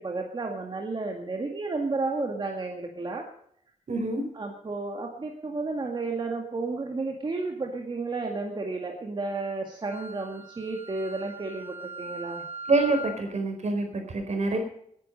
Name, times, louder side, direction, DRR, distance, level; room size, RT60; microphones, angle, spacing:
voice 1, 0.0-3.3 4.3-12.4, right 3 dB, 35° right, 2 dB, 1.9 m, -32 dB
voice 2, 3.9-4.2 12.7-14.6, right 3 dB, 65° right, 5 dB, 4.5 m, -26 dB
Wind instrument woodwind instrument, 9.9-13.2, equal, 15° right, 5.6 m, -40 dB
19.0 x 10.5 x 5.4 m, 0.68 s
wide cardioid pair, 155°, 13 cm